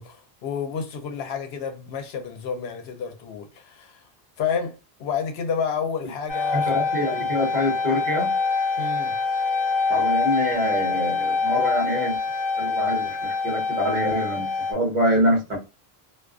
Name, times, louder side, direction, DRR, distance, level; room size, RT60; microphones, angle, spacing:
voice 1, 0.0-4.1 4.4-6.7 8.8-9.2, left 6 dB, 80° left, 0.8 m, -30 dB
sound 1, 6.3-14.7, left 4 dB, 40° left, 0.4 m, -25 dB
voice 2, 6.5-8.3 9.9-12.2 12.6-15.6, equal, 45° right, 1.1 m, -25 dB
2.4 x 2.3 x 2.3 m
omnidirectional pair, 1.1 m